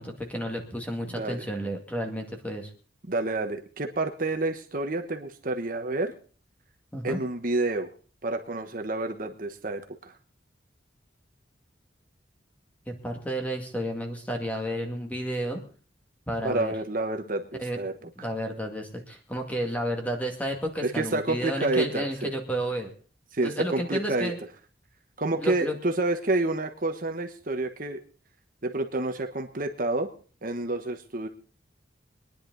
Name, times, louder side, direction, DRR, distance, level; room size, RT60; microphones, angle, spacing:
voice 1, 0.0-2.7 6.9-7.2 12.9-15.6 16.3-16.7 17.6-22.9 23.4-24.4 25.4-25.7, equal, 10° left, 2 dB, 2.1 m, -31 dB
voice 2, 1.1-1.4 3.1-6.1 7.0-7.9 8.2-10.1 16.4-17.9 20.8-22.3 23.3-24.3 25.2-28.0 28.6-30.1 30.4-31.3, right 2 dB, 45° right, 5 dB, 1.2 m, -29 dB
23.5 x 10.5 x 4.0 m, 0.40 s
head